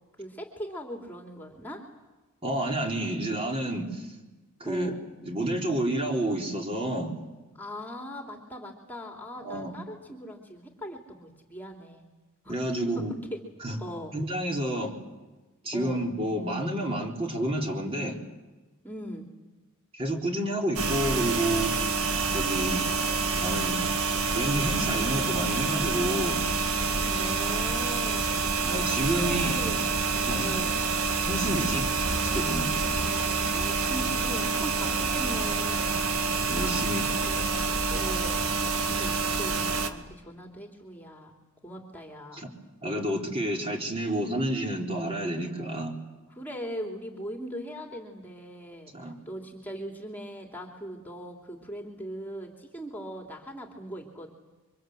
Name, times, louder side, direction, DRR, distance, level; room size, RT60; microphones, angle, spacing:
voice 1, 0.2-1.8 4.6-5.0 7.5-12.0 12.4-12.6 13.0-13.1 13.3-13.4 13.8-14.1 15.7-16.0 18.8-19.3 22.5-22.9 27.0-28.5 29.1-29.9 30.4-30.9 32.8-33.2 33.5-36.3 36.6-37.4 37.9-41.3 41.6-42.5 42.9-43.2 46.3-54.3, equal, 10° left, 2 dB, 2.9 m, -40 dB
voice 2, 2.4-4.1 4.6-4.9 5.2-7.1 9.4-9.7 12.5-13.1 13.6-13.8 14.1-14.9 15.6-18.2 19.9-21.7 22.3-22.8 23.4-23.8 24.3-26.4 28.6-29.6 30.3-30.5 31.2-31.9 32.3-32.7 36.5-37.3 42.3-42.5 42.8-45.9 48.9-49.2, right 1 dB, 30° right, 1 dB, 4.2 m, -29 dB
sound 1, 20.8-39.9, right 4 dB, 85° right, 2.0 m, -27 dB
29.0 x 24.5 x 8.0 m, 1.1 s
head